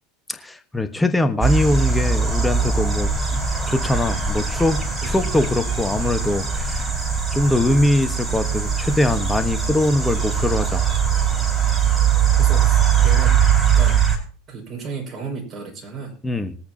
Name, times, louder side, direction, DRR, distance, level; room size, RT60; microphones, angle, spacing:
voice 1, 0.3-6.9 7.3-10.8 16.2-16.6, left 1 dB, 10° left, 8 dB, 1.3 m, -22 dB
sound 1, 1.4-14.2, right 7 dB, 15° right, 4.7 m, -21 dB
voice 2, 12.3-14.1 14.5-16.1, right 5 dB, 35° right, 0 dB, 5.7 m, -34 dB
21.5 x 8.6 x 2.9 m, 0.44 s
figure-of-eight pair, 80°, 0 cm